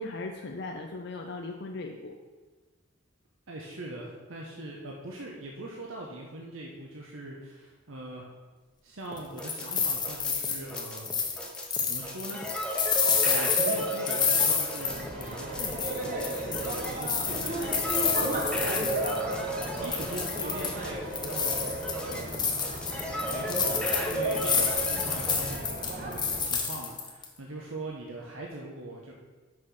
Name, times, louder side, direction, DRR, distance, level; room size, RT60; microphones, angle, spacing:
voice 1, 0.0-2.1, left 2 dB, 55° left, 2 dB, 0.6 m, -38 dB
voice 2, 3.5-8.2 8.8-11.1 11.9-12.4 13.2-19.2 19.7-21.6 22.1-22.4 23.3-29.1, right 1 dB, 90° right, -1 dB, 1.0 m, -41 dB
sound 1, 9.1-25.6, right 1 dB, 5° left, 0.9 m, -34 dB
sound 2, 9.2-15.3 15.6-19.3 19.6-20.8 21.1-27.2, left 6 dB, 20° left, 1.1 m, -29 dB
sound 3, 14.8-26.5, right 1 dB, 40° right, 1.2 m, -37 dB
6.3 x 5.8 x 6.3 m, 1.3 s
head